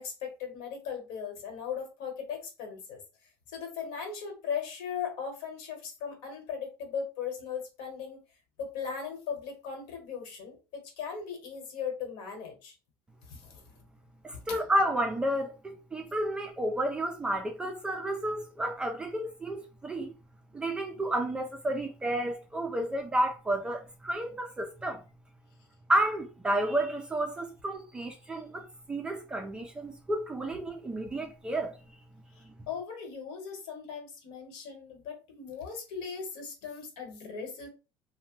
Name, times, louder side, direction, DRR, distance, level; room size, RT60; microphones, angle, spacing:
voice 1, 0.0-3.0 3.5-8.2 8.6-12.7 13.3-13.6 14.3-14.4 32.7-37.7, left 6 dB, 70° left, 1.2 m, -38 dB
voice 2, 14.2-20.1 20.5-25.0 25.9-32.0 32.4-32.7, right 1 dB, 10° right, 0.3 m, -31 dB
2.9 x 2.1 x 3.0 m
cardioid pair, 180°, 9 cm